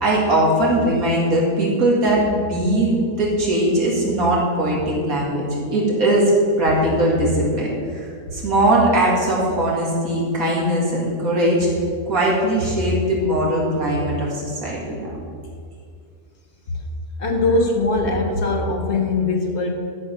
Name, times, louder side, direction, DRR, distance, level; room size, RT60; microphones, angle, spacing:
voice 1, 0.0-5.4 5.7-6.3 6.6-8.0 8.3-11.7 12.1-15.1, right 1 dB, 70° right, -4 dB, 2.4 m, -20 dB
voice 2, 17.2-19.7, left 3 dB, 55° left, 3 dB, 0.9 m, -21 dB
11.5 x 4.9 x 5.7 m, 2.2 s
omnidirectional pair, 1.6 m